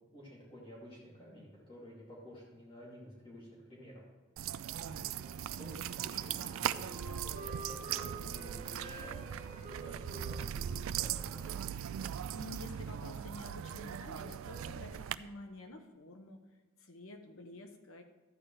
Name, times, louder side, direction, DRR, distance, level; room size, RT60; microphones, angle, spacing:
voice 1, 0.1-4.0 4.5-6.9 7.2-11.6, equal, 25° left, -5 dB, 2.5 m, -52 dB
sound 1, 4.4-15.1, right 9 dB, 75° right, 0.3 m, -39 dB
Wind instrument woodwind instrument, 5.9-12.9, right 2 dB, 30° right, 2.3 m, -50 dB
voice 2, 12.3-16.4 16.8-18.0, left 2 dB, 80° left, 5 dB, 1.0 m, -49 dB
12.5 x 8.8 x 3.3 m, 1.2 s
head